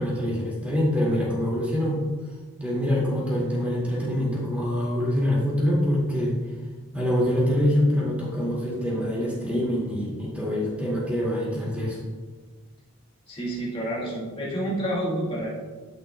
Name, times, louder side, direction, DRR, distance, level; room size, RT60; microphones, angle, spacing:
voice 1, 0.0-2.0 2.6-6.4 6.9-12.0, equal, 5° right, -5 dB, 2.0 m, -25 dB
voice 2, 13.3-15.5, right 1 dB, 25° left, -6 dB, 1.9 m, -29 dB
12.0 x 5.7 x 2.2 m, 1.4 s
head